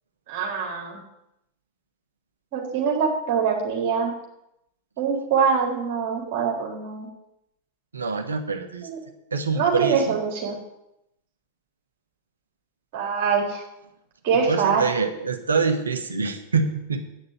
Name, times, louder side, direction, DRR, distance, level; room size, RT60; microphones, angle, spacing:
voice 1, 0.3-1.0 2.5-4.1 5.0-7.1 8.8-9.0 9.5-10.6 12.9-13.6 14.2-14.8, right 6 dB, 45° right, 0 dB, 3.7 m, -24 dB
voice 2, 7.9-8.9 9.3-10.2 14.3-17.1, right 4 dB, 75° right, 6 dB, 1.2 m, -25 dB
9.4 x 6.6 x 8.9 m, 0.82 s
figure-of-eight pair, 90°, 0 cm